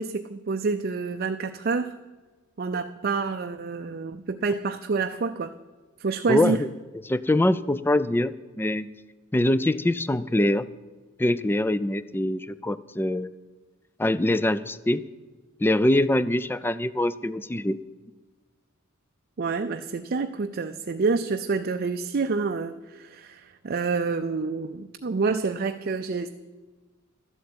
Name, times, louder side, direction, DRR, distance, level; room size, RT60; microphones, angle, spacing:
voice 1, 0.0-1.9 2.6-5.5 6.0-6.6 19.4-26.3, right 4 dB, 50° right, 8 dB, 0.5 m, -28 dB
voice 2, 6.3-6.7 7.1-8.9 9.3-10.7 11.2-13.3 14.0-15.0 15.6-17.8, left 1 dB, 10° left, 16 dB, 0.3 m, -24 dB
12.5 x 8.0 x 8.6 m, 1.3 s
head